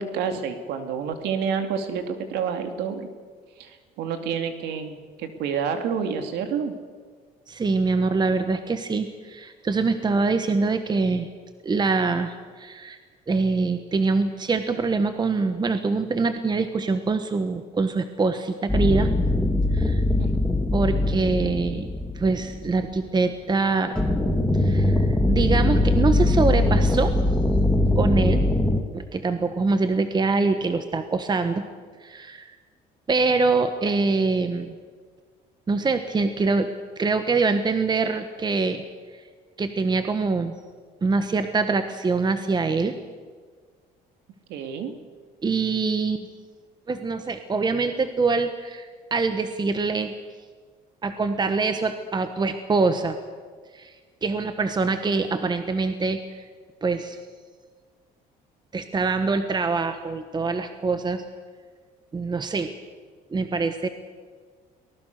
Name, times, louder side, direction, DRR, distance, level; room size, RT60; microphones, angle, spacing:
voice 1, 0.0-3.1 3.6-6.8 20.2-20.3 44.5-44.9, right 6 dB, 85° right, 7 dB, 2.5 m, -29 dB
voice 2, 7.5-11.3 11.6-13.0 13.3-19.1 19.7-20.0 20.7-21.9 22.1-23.9 24.5-27.1 28.0-28.4 28.9-31.6 32.0-32.5 33.1-34.7 35.7-36.7 37.0-38.8 39.6-40.5 41.0-42.9 45.4-46.3 46.9-50.1 51.0-53.2 53.7-53.9 54.2-56.2 56.8-57.2 58.7-61.2 62.1-62.7 63.3-63.9, right 4 dB, 25° right, 9 dB, 1.3 m, -24 dB
sound 1, 18.7-23.0 23.9-28.8, left 1 dB, 5° left, 2.6 m, -21 dB
23.5 x 19.5 x 6.7 m, 1.5 s
cardioid pair, 110°, 17 cm